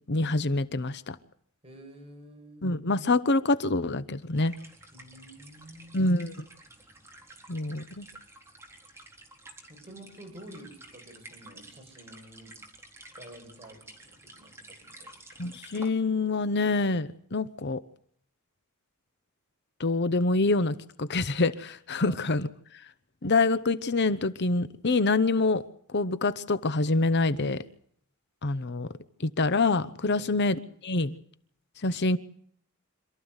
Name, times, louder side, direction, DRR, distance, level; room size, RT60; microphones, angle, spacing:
voice 1, 0.1-1.1 2.6-4.5 5.9-6.3 7.5-8.0 15.4-17.8 19.8-22.5 23.2-25.6 25.9-27.6 28.4-28.9 29.2-31.1 31.8-32.2, left 3 dB, 50° left, 0.9 m, -26 dB
voice 2, 1.6-2.7 4.9-6.2 9.7-12.6 13.1-15.2 22.0-22.3 30.1-30.6, right 1 dB, 25° right, 7.7 m, -49 dB
sound 1, 4.3-15.9, right 2 dB, 10° right, 4.1 m, -51 dB
27.0 x 14.0 x 8.1 m
head